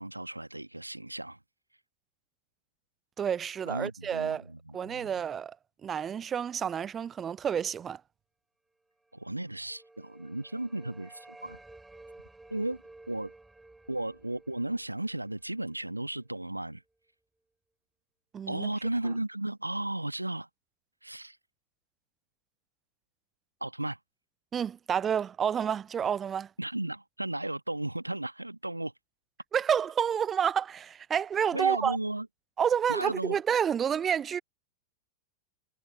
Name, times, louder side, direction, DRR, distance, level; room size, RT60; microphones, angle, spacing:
voice 1, 0.0-1.4 3.6-5.1 9.1-11.6 12.5-13.3 13.9-16.8 18.5-20.5 21.0-21.4 23.6-24.0 26.6-28.9 31.5-32.3 32.9-33.4, right 1 dB, 85° right, 1.4 m, -35 dB
voice 2, 3.2-4.4 4.7-5.6 5.8-8.0 18.3-18.7 24.5-26.5 29.5-32.0 32.6-34.4, right 8 dB, 25° right, 0.5 m, -29 dB
sound 1, 9.2-16.2, right 2 dB, 5° right, 3.5 m, -54 dB
figure-of-eight pair, 90°, 0 cm